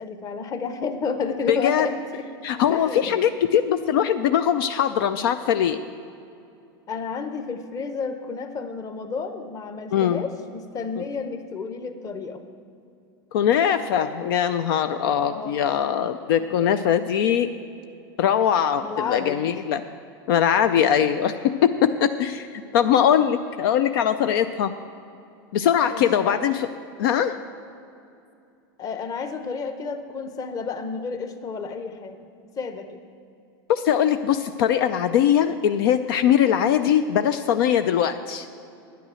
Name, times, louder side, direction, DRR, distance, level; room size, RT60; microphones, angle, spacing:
voice 1, 0.0-2.3 2.7-3.2 6.9-12.4 15.0-15.7 18.8-19.6 25.9-26.4 28.8-32.2 32.6-33.0, left 5 dB, 30° left, 8 dB, 1.0 m, -31 dB
voice 2, 1.5-1.9 2.4-5.8 9.9-10.2 11.0-11.1 13.3-17.5 18.2-19.8 20.3-24.7 25.5-26.7 27.0-27.4 33.7-38.5, left 9 dB, 70° left, 9 dB, 0.5 m, -21 dB
9.9 x 9.4 x 6.3 m, 2.5 s
supercardioid pair, 120°, 12 cm